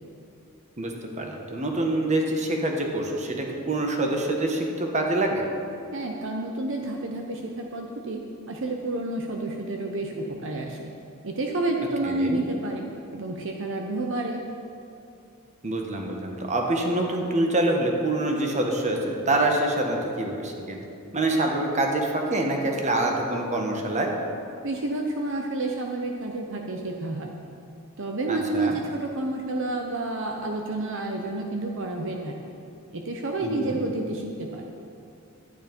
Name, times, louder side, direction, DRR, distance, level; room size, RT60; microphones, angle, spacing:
voice 1, 0.8-5.4 12.1-12.4 15.6-20.8 21.1-24.1 28.3-28.8 33.4-33.8, right 2 dB, 35° right, 1 dB, 1.4 m, -26 dB
voice 2, 5.9-10.9 11.2-12.9 13.1-14.4 24.6-27.3 28.0-32.3 32.9-34.7, right 2 dB, 65° right, 2 dB, 0.9 m, -30 dB
12.0 x 9.2 x 5.3 m, 2.6 s
head